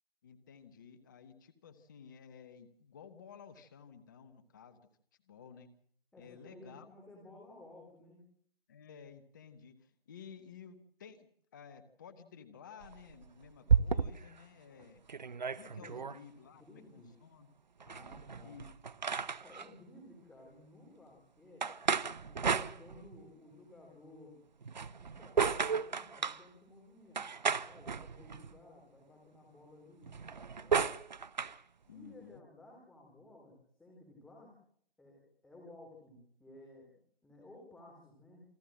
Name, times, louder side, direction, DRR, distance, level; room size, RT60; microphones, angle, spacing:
voice 1, 0.2-4.9 5.3-5.7 6.2-6.9 8.7-15.0 15.6-17.5 18.4-18.7 31.9-32.4, left 7 dB, 20° left, 12 dB, 1.0 m, -54 dB
voice 2, 6.1-8.2 15.6-16.0 16.4-17.1 17.8-18.5 19.4-24.4 25.0-27.2 27.7-30.8 31.9-34.6 35.0-37.0 37.2-38.4, left 2 dB, ahead, -2 dB, 3.0 m, -56 dB
sound 1, 12.8-14.4 14.8-14.9 15.1-16.2 17.8-19.7 21.6-23.3 24.6-26.4 27.2-28.6 30.0-31.6, right 6 dB, 50° right, 0.7 m, -33 dB
27.5 x 13.0 x 7.6 m, 0.63 s
figure-of-eight pair, 155°, 29 cm